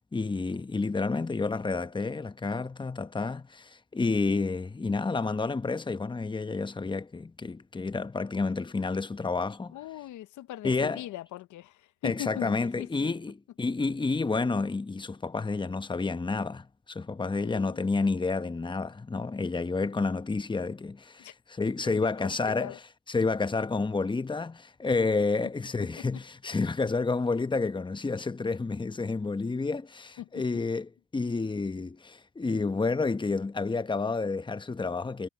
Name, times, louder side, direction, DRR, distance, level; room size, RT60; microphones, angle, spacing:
voice 1, 0.1-9.7 10.6-11.1 12.0-22.8 23.1-35.3, left 3 dB, 15° left, 0.9 m, -30 dB
voice 2, 9.7-13.1 17.4-17.8 21.2-21.3 22.0-22.8 30.2-30.3, left 14 dB, 75° left, 0.7 m, -40 dB
cardioid pair, 90°, 30 cm